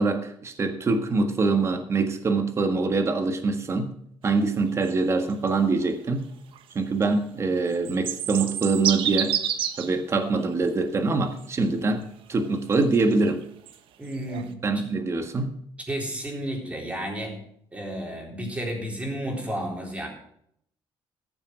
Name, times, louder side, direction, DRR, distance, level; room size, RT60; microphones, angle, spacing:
voice 1, 0.0-3.9 4.2-6.2 6.7-9.4 9.8-13.4 14.6-15.5, right 3 dB, 30° right, 7 dB, 1.7 m, -24 dB
sound 1, 4.6-4.9 5.3-5.5 5.8-5.9 6.5-6.6 7.0-7.1 7.7-10.0 10.4-10.5 11.4-11.5 12.5-13.8 14.1-14.5, right 10 dB, 75° right, 1.1 m, -29 dB
voice 2, 14.0-14.5 15.9-17.4 17.7-20.1, right 1 dB, 15° right, 0 dB, 3.8 m, -32 dB
15.0 x 7.2 x 6.3 m, 0.69 s
cardioid pair, 140°, 9 cm